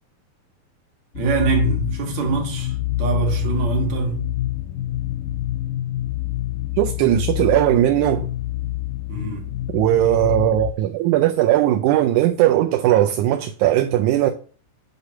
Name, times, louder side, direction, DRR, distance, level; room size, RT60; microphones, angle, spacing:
sound 1, 1.1-10.7, left 15 dB, 85° left, 2.1 m, -26 dB
voice 1, 1.1-4.2 9.1-9.6, right 6 dB, 65° right, 2.8 m, -24 dB
voice 2, 6.8-8.3 9.7-14.3, right 13 dB, 80° right, 2.0 m, -18 dB
7.9 x 2.8 x 5.7 m
omnidirectional pair, 3.5 m